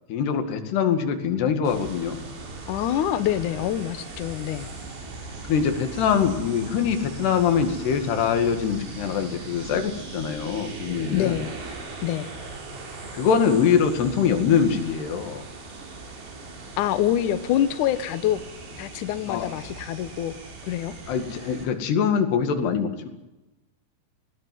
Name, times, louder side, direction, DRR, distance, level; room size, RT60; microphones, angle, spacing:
voice 1, 0.1-2.2 5.5-11.5 13.1-15.4 19.3-19.5 21.1-23.1, left 7 dB, 65° left, 7 dB, 4.0 m, -23 dB
sound 1, 1.7-21.7, right 3 dB, 85° right, 6.8 m, -39 dB
voice 2, 2.7-4.7 11.1-11.5 12.0-12.3 16.8-18.4 18.8-20.3 20.7-20.9, left 11 dB, 85° left, 11 dB, 1.8 m, -25 dB
19.5 x 17.5 x 9.4 m, 1.0 s
omnidirectional pair, 5.3 m